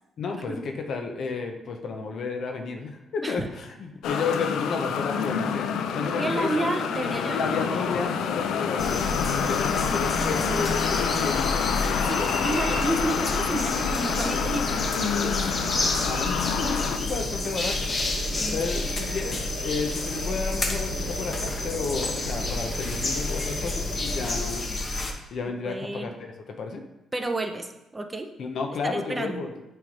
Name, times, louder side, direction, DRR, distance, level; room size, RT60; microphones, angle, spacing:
voice 1, 0.2-6.7 7.3-11.6 12.2-12.7 16.0-17.9 18.5-24.7 25.3-26.8 28.4-29.5, left 4 dB, 65° left, 4 dB, 0.9 m, -32 dB
sound 1, 4.0-17.0, left 7 dB, 80° left, 0.4 m, -28 dB
sound 2, 5.0-24.5, right 4 dB, 70° right, 1.0 m, -40 dB
voice 2, 6.2-7.9 12.1-15.5 18.4-19.0 25.6-26.2 27.1-27.7 27.9-28.3 28.8-29.4, right 2 dB, 15° right, 6 dB, 0.7 m, -31 dB
sound 3, 8.8-25.1, left 2 dB, 35° left, 1.1 m, -30 dB
7.7 x 3.4 x 5.4 m, 0.94 s
cardioid pair, 90°, 0 cm